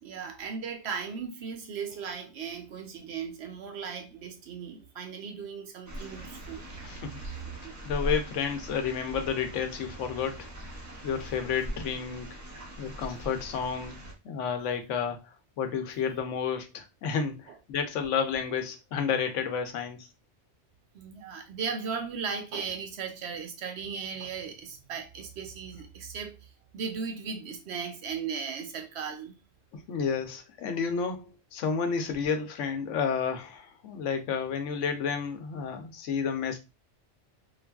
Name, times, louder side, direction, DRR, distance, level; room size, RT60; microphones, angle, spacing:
voice 1, 0.0-6.7 7.4-7.6 20.9-29.4, right 6 dB, 65° right, 0.8 m, -37 dB
sound 1, 5.9-14.1, right 1 dB, 25° right, 0.4 m, -40 dB
voice 2, 6.8-7.2 7.8-10.5 11.0-12.3 12.8-14.0 14.2-20.0 29.7-36.6, left 6 dB, 80° left, 0.9 m, -31 dB
3.2 x 2.3 x 2.3 m
omnidirectional pair, 1.2 m